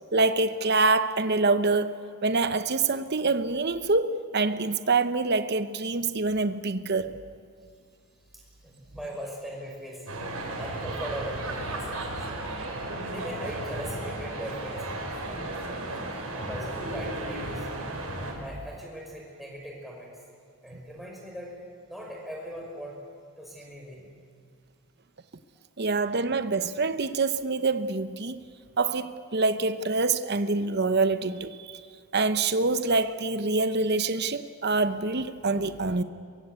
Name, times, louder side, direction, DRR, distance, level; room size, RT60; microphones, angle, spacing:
voice 1, 0.1-2.0 2.2-7.2 25.8-28.4 28.8-31.8 32.1-36.0, right 3 dB, 50° right, 0.9 m, -25 dB
voice 2, 8.3-12.2 13.0-15.7 16.3-17.7 18.4-20.1 20.6-21.5 21.9-23.0 23.4-24.1, equal, ahead, 5.4 m, -40 dB
sound 1, 10.1-18.3, right 2 dB, 80° right, 5.5 m, -34 dB
23.5 x 22.5 x 8.2 m
head